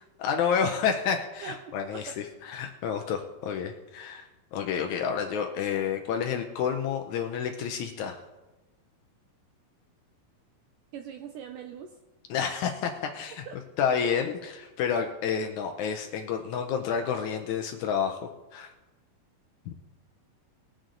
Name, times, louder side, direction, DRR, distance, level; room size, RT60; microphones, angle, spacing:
voice 1, 0.0-8.2 12.3-13.4 13.8-18.2 18.5-18.7 19.7-19.8, left 7 dB, 85° left, 3 dB, 1.6 m, -30 dB
voice 2, 1.4-2.2 10.9-12.0 13.3-13.6, right 8 dB, 80° right, 5 dB, 1.9 m, -42 dB
21.0 x 7.7 x 3.8 m, 1.1 s
omnidirectional pair, 4.4 m